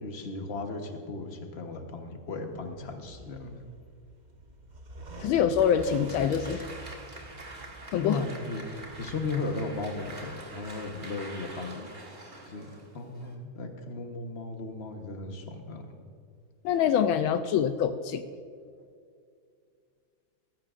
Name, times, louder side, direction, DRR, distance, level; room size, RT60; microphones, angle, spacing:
voice 1, 0.0-3.6 8.0-8.6 8.9-11.9 12.4-12.7 12.9-15.9, left 3 dB, 40° left, 4 dB, 1.1 m, -36 dB
sound 1, 2.5-11.0, right 1 dB, 50° right, 0.5 m, -47 dB
voice 2, 5.2-6.7 7.9-8.2 16.6-18.2, left 8 dB, 80° left, 9 dB, 1.4 m, -25 dB
Applause, 5.2-13.3, right 2 dB, 25° right, 1.4 m, -46 dB
19.0 x 15.0 x 2.5 m, 2.3 s
omnidirectional pair, 2.3 m